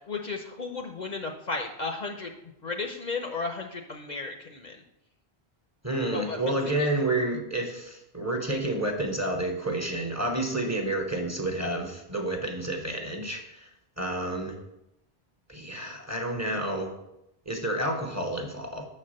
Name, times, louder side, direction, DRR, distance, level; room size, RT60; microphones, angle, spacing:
voice 1, 0.1-2.3 2.6-4.8 6.1-6.9, left 4 dB, 50° left, 4 dB, 0.7 m, -34 dB
voice 2, 5.8-13.7 14.0-14.5 15.5-16.9 17.5-18.8, right 1 dB, 15° right, 2 dB, 0.8 m, -30 dB
6.7 x 4.2 x 6.3 m, 0.85 s
omnidirectional pair, 1.0 m